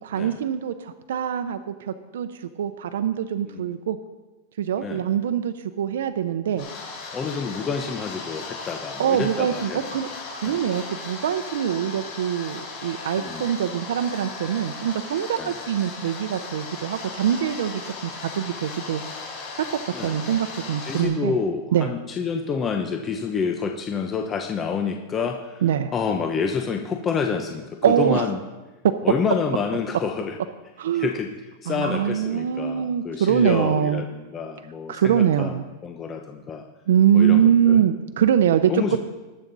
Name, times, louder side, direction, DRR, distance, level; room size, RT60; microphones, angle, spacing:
voice 1, 0.0-4.0 4.6-6.7 9.0-19.2 19.7-21.4 21.7-21.9 25.6-25.9 27.8-28.3 28.8-28.9 30.8-31.1 31.7-34.0 34.9-35.7 36.9-39.0, right 9 dB, 85° right, 9 dB, 0.6 m, -23 dB
sound 1, 6.6-21.0, left 4 dB, 40° left, 3.9 m, -37 dB
voice 2, 7.1-9.8 10.4-10.6 13.2-13.4 15.4-15.5 19.9-20.1 20.8-25.6 25.9-28.4 29.0-30.4 30.9-31.3 31.6-34.1 34.3-36.6 37.1-37.8 38.7-39.0, left 6 dB, 20° left, 4 dB, 0.7 m, -28 dB
19.5 x 7.3 x 4.0 m, 1.2 s
supercardioid pair, 150°, 0 cm